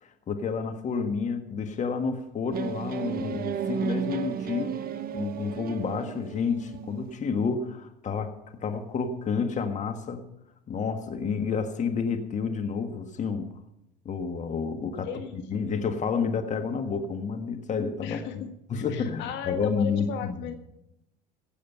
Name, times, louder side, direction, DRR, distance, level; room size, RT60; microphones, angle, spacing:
voice 1, 0.0-4.8 5.1-8.3 8.6-10.2 10.7-13.5 14.0-15.1 15.5-18.4 18.7-20.5, left 5 dB, 35° left, 7 dB, 1.5 m, -30 dB
sound 1, 2.5-7.2, right 8 dB, 45° right, 1.0 m, -34 dB
voice 2, 15.0-15.6 18.0-18.5 18.7-20.5, left 8 dB, 60° left, 7 dB, 1.5 m, -37 dB
16.5 x 7.5 x 5.6 m, 0.84 s
hypercardioid pair, 80°, 21 cm